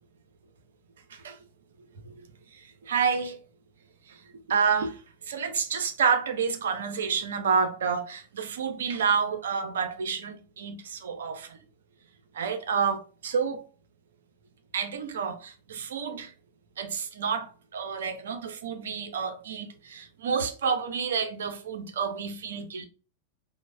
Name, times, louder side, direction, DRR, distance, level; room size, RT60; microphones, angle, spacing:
voice 1, 1.1-1.4 1.8-3.4 4.1-4.2 4.5-11.6 12.3-13.6 14.7-16.3 16.8-22.9, right 6 dB, 65° right, 0.5 m, -29 dB
3.0 x 2.1 x 3.3 m
figure-of-eight pair, 90°, 0 cm